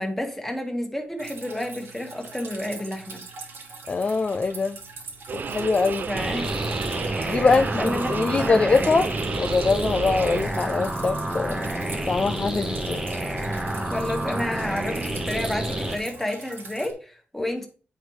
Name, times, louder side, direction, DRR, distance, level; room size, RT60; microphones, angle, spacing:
voice 1, 0.0-3.2 6.0-6.6 7.1-7.4 7.8-8.6 13.8-17.7, left 1 dB, 5° left, 1.5 m, -30 dB
Drip, 1.2-16.9, right 4 dB, 75° right, 1.8 m, -42 dB
voice 2, 3.9-4.8 5.3-6.1 6.9-7.0 7.3-9.1 9.4-11.7 12.1-13.0 13.5-13.6, left 4 dB, 30° left, 0.4 m, -23 dB
sound 1, 5.3-10.4, right 6 dB, 50° right, 0.4 m, -32 dB
sound 2, 6.1-16.0, right 1 dB, 20° right, 1.0 m, -29 dB
9.9 x 5.1 x 3.1 m
wide cardioid pair, 155°, 4 cm